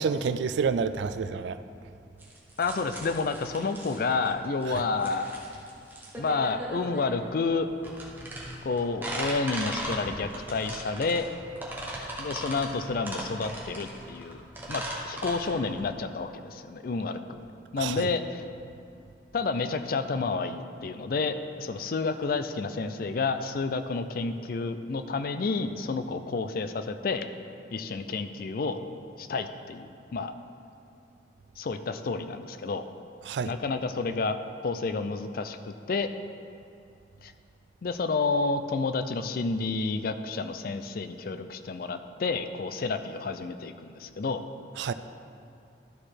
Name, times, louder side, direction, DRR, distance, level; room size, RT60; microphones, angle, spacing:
voice 1, 0.0-1.6 17.8-18.1 33.3-33.5 44.8-44.9, right 5 dB, 75° right, 12 dB, 0.3 m, -28 dB
sound 1, 2.2-16.0, right 1 dB, 10° right, 1.1 m, -38 dB
voice 2, 2.6-5.4 6.2-7.7 8.6-11.3 12.2-14.4 14.7-17.4 17.7-18.4 19.3-27.3 27.7-28.8 29.2-30.3 31.6-32.9 33.4-34.4 34.6-36.1 37.2-37.3 37.8-44.4, left 4 dB, 55° left, 9 dB, 0.4 m, -30 dB
12.0 x 4.9 x 4.3 m, 2.5 s
head